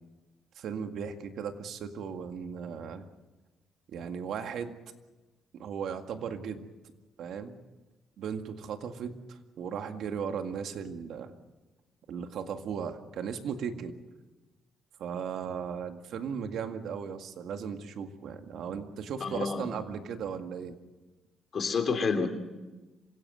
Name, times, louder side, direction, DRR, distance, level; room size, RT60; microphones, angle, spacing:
voice 1, 0.6-3.1 3.9-4.7 5.6-6.6 7.2-7.6 8.2-11.3 12.1-13.9 15.0-20.8, right 7 dB, 75° right, 6 dB, 2.0 m, -36 dB
voice 2, 19.2-19.7 21.5-22.3, left 5 dB, 50° left, 6 dB, 3.3 m, -29 dB
26.0 x 16.5 x 7.9 m, 1.2 s
cardioid pair, 90°, 0 cm